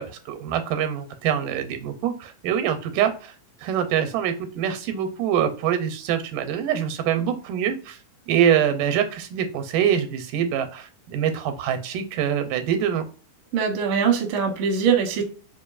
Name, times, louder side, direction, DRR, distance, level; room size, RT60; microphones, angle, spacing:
voice 1, 0.0-3.4 3.6-8.0 8.3-13.1, right 9 dB, 90° right, 9 dB, 2.2 m, -24 dB
voice 2, 13.5-15.2, right 6 dB, 70° right, 3 dB, 1.3 m, -22 dB
5.0 x 2.6 x 2.4 m, 0.39 s
omnidirectional pair, 3.7 m